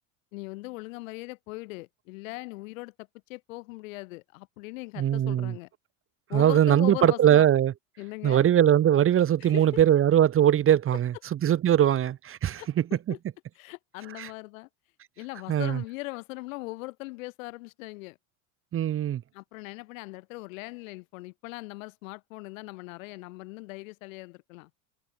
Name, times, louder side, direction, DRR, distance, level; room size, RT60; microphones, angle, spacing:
voice 1, 0.3-2.9 3.3-5.7 6.3-7.5 8.0-8.5 9.4-9.6 10.7-10.8 12.6-12.7 13.1-13.2 13.6-14.7 15.2-18.2 19.3-24.7, left 23 dB, 75° left, 5.9 m, -40 dB
voice 2, 5.0-5.5 6.3-7.7 8.2-11.1 11.4-12.8 14.2-14.3 15.5-15.8 18.7-19.2, right 10 dB, 30° right, 1.6 m, -21 dB
supercardioid pair, 115°, 40 cm